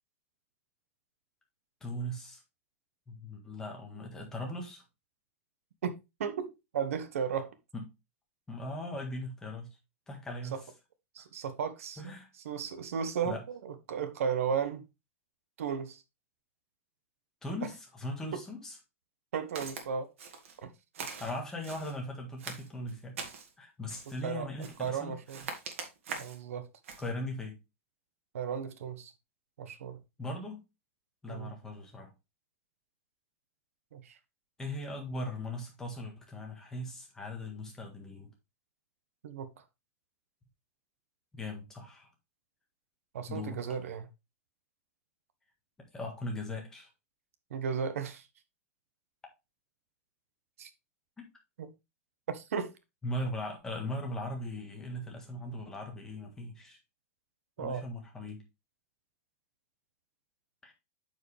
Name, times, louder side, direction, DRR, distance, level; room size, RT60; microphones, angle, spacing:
voice 1, 1.8-2.4 3.1-4.8 7.7-7.8 8.5-9.7 10.1-10.6 12.0-12.3 13.2-13.4 17.4-18.8 21.2-23.1 23.6-25.2 27.0-27.6 30.2-30.6 31.2-32.1 34.6-38.3 41.3-42.1 43.3-43.6 45.9-46.9 51.2-51.3 53.0-56.8 57.6-58.4 60.6-60.7, left 1 dB, 5° left, 1.6 m, -39 dB
voice 2, 5.8-7.6 10.5-10.6 11.1-12.1 12.4-14.9 15.6-16.0 18.3-18.4 19.3-20.1 20.6-20.7 24.2-25.5 26.1-26.7 28.3-29.1 29.6-30.0 31.3-31.5 33.9-34.2 39.2-39.5 43.1-44.1 47.5-48.3 50.6-50.7 51.6-51.7 52.3-52.7 57.6-57.8, right 7 dB, 90° right, 1.2 m, -35 dB
Walk footsteps, 19.6-19.9 20.2-20.6 20.9-22.0 22.4-23.5 23.9-24.2 24.6-24.9 25.3-26.4 26.8-27.1, right 5 dB, 70° right, 2.0 m, -42 dB
9.1 x 5.0 x 3.3 m
supercardioid pair, 175°, 7 cm